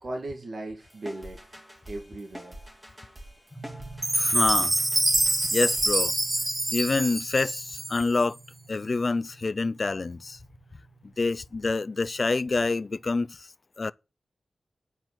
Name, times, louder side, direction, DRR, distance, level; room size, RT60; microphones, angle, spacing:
voice 1, 0.0-1.4 1.9-2.6, right 2 dB, 60° right, 2.1 m, -37 dB
sound 1, 0.8-6.7, equal, 15° right, 2.3 m, -46 dB
sound 2, 3.5-13.2, right 3 dB, 20° left, 2.8 m, -49 dB
Chime, 4.0-8.2, right 2 dB, 30° right, 1.2 m, -26 dB
voice 2, 4.2-4.7 5.5-6.1 6.7-8.4 8.7-10.4 11.2-13.5 13.8-13.9, left 3 dB, 45° left, 0.4 m, -27 dB
9.4 x 4.6 x 7.5 m
wide cardioid pair, 80°, 0 cm